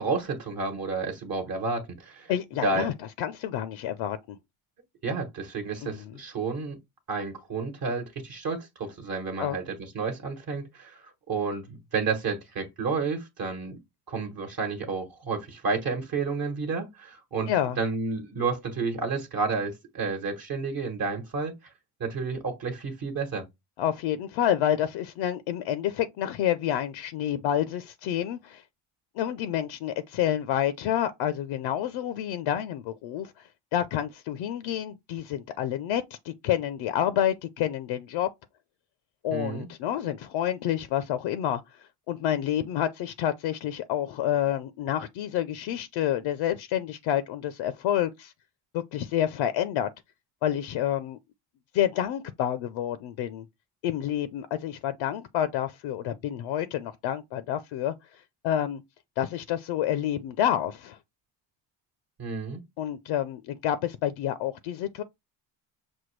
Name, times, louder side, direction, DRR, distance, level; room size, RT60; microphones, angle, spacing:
voice 1, 0.0-2.3 2.6-2.9 5.0-6.8 7.1-13.8 14.1-17.5 17.8-21.5 22.0-23.4 39.3-39.7 62.2-62.6, right 4 dB, 45° right, 1.2 m, -31 dB
voice 2, 2.3-2.9 3.2-4.4 5.8-6.1 9.4-9.6 17.5-17.8 23.8-28.6 29.2-33.3 33.7-38.3 39.2-41.6 42.1-48.3 48.7-49.9 50.4-51.2 51.7-53.4 53.8-57.9 58.4-58.8 59.2-61.0 62.8-65.0, left 11 dB, 65° left, 0.6 m, -28 dB
6.1 x 2.2 x 3.1 m
cardioid pair, 100°, 49 cm